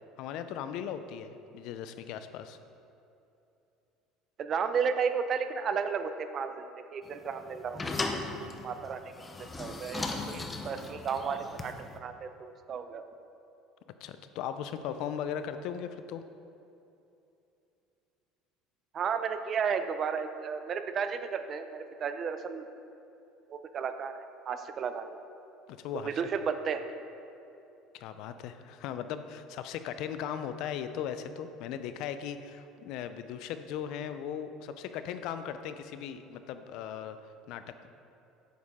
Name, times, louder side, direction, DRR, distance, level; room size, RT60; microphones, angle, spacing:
voice 1, 0.2-2.6 14.0-16.2 25.7-26.2 27.9-37.2 37.5-37.9, left 8 dB, 65° left, 10 dB, 0.4 m, -38 dB
voice 2, 4.4-8.1 8.6-9.1 9.6-13.0 18.9-22.6 23.5-25.2 26.0-26.8, right 6 dB, 35° right, 9 dB, 0.5 m, -33 dB
sound 1, 7.1-12.0, left 3 dB, 15° left, 0.6 m, -37 dB
9.2 x 6.4 x 3.7 m, 2.8 s
cardioid pair, 135°, 0 cm